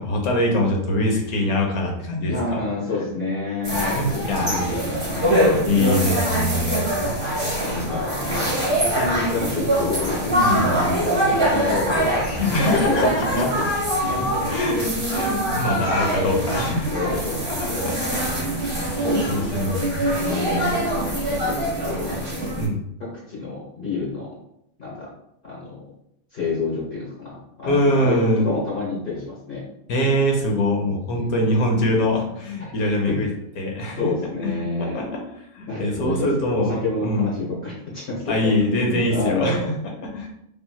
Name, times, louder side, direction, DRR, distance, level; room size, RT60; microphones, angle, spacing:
voice 1, 0.0-2.7 3.8-4.7 5.2-7.2 10.4-10.7 12.4-13.4 14.5-16.9 17.5-18.2 18.9-20.2 20.5-20.7 22.6-22.8 27.6-28.5 29.9-33.3 33.6-34.1 34.4-35.2 35.5-37.3 38.3-39.7 40.0-40.3, left 1 dB, 85° left, 1 dB, 1.2 m, -23 dB
voice 2, 2.3-5.9 7.6-12.4 12.7-13.6 14.1-14.6 16.9-18.6 20.1-22.6 23.3-24.3 24.8-25.1 25.4-25.8 26.3-29.6 31.1-31.4 32.6-32.7 33.1-33.2 34.0-35.0 35.7-36.3 36.6-39.7, left 3 dB, 40° left, -6 dB, 1.1 m, -28 dB
sound 1, 3.6-22.7, right 1 dB, 20° right, 0.8 m, -24 dB
3.1 x 2.7 x 2.2 m, 0.77 s
omnidirectional pair, 1.5 m